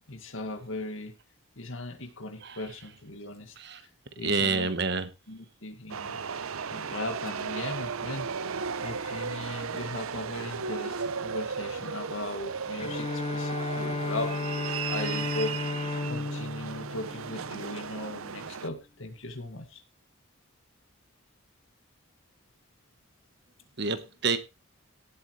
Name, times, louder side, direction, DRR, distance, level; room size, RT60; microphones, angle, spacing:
voice 1, 0.1-1.1 1.6-3.9 4.2-4.7 5.3-8.3 8.8-15.5 16.0-19.8, left 2 dB, 70° left, 1.9 m, -38 dB
voice 2, 4.2-5.1 23.8-24.4, right 4 dB, 50° right, 1.2 m, -28 dB
sound 1, 5.9-18.7, right 6 dB, 80° right, 0.7 m, -35 dB
Bowed string instrument, 12.8-18.0, left 3 dB, 30° left, 0.6 m, -33 dB
17.5 x 8.1 x 3.2 m
head